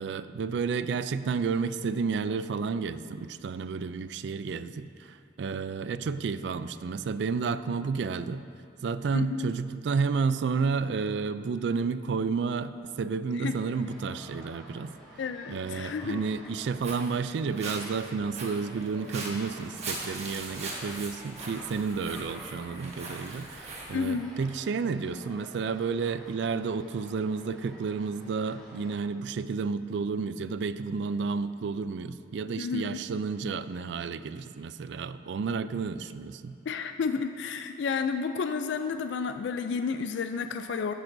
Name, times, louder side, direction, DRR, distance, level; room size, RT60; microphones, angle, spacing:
voice 1, 0.0-8.4 8.8-14.9 15.5-36.6, right 5 dB, 65° right, 13 dB, 0.3 m, -31 dB
voice 2, 9.1-9.5 13.4-13.6 15.2-16.2 23.9-24.3 32.6-33.0 36.7-40.9, left 5 dB, 70° left, 8 dB, 0.4 m, -31 dB
sound 1, 13.5-29.0, equal, ahead, 2.5 m, -51 dB
Walk footsteps, 16.5-24.1, right 2 dB, 35° right, 1.3 m, -41 dB
14.0 x 10.5 x 2.6 m, 2.5 s
head